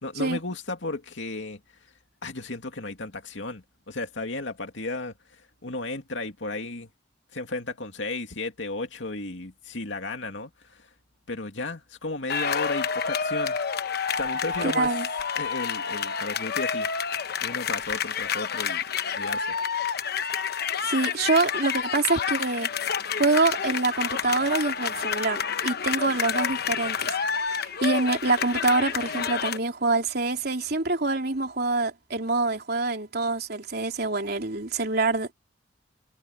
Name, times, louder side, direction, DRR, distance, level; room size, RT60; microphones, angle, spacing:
voice 1, 0.0-1.6 2.2-5.1 5.6-6.9 7.3-10.9 11.3-13.6 14.2-14.9 15.4-16.9 17.4-18.8 19.1-19.5, left 2 dB, 90° left, 2.4 m, -34 dB
sound 1, 12.3-29.6, left 6 dB, 60° left, 1.0 m, -29 dB
voice 2, 14.6-15.1 20.8-22.7 23.2-35.3, right 3 dB, 60° right, 3.4 m, -26 dB
head